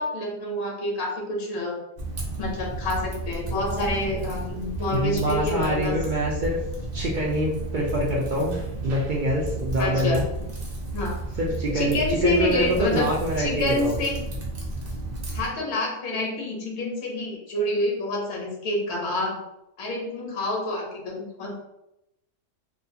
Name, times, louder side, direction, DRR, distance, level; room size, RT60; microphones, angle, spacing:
voice 1, 0.0-1.8 2.4-6.0 9.8-10.2 10.9-11.2 11.7-13.1 13.4-14.2 15.3-19.4 19.8-21.6, left 2 dB, 60° left, 0 dB, 1.0 m, -27 dB
Typing, 2.0-15.5, right 2 dB, 50° right, 0.9 m, -32 dB
voice 2, 4.9-6.6 6.9-10.2 11.4-14.0, right 1 dB, 65° right, -3 dB, 0.4 m, -25 dB
2.5 x 2.3 x 2.7 m, 0.85 s
omnidirectional pair, 1.4 m